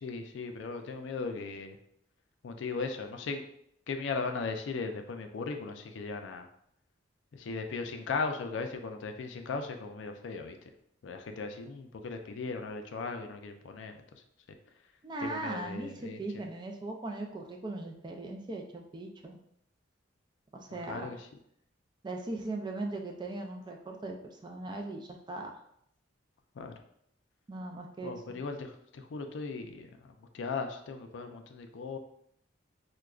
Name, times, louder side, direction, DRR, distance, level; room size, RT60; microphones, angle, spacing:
voice 1, 0.0-1.8 2.4-3.4 3.9-6.4 7.3-10.6 11.0-14.0 15.2-16.2 20.9-21.3 26.6-26.7 28.0-32.0, left 4 dB, 70° left, 6 dB, 0.4 m, -37 dB
voice 2, 15.0-19.4 20.5-21.1 22.0-25.5 27.5-28.2, right 2 dB, 25° right, 2 dB, 0.3 m, -39 dB
4.7 x 2.2 x 2.3 m, 0.71 s
head